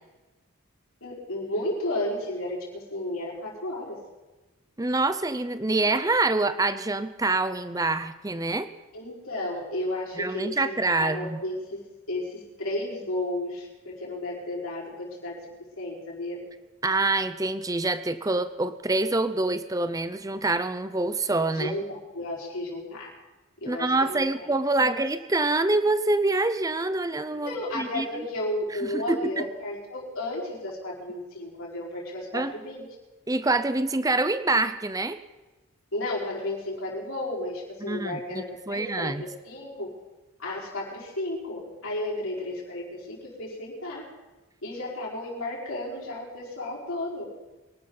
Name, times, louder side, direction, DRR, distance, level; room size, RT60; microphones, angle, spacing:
voice 1, 1.0-4.0 8.9-11.8 12.1-15.4 15.8-16.4 21.5-23.1 23.6-24.9 27.4-32.9 35.9-39.9 40.4-44.0 44.6-47.2, left 1 dB, 80° left, -4 dB, 4.8 m, -33 dB
voice 2, 4.8-8.7 10.2-11.4 16.8-21.8 23.7-28.3 28.8-29.4 32.3-32.5 33.3-35.2 37.8-39.2, right 2 dB, 15° right, 12 dB, 0.6 m, -26 dB
23.5 x 12.5 x 4.0 m, 1.1 s
head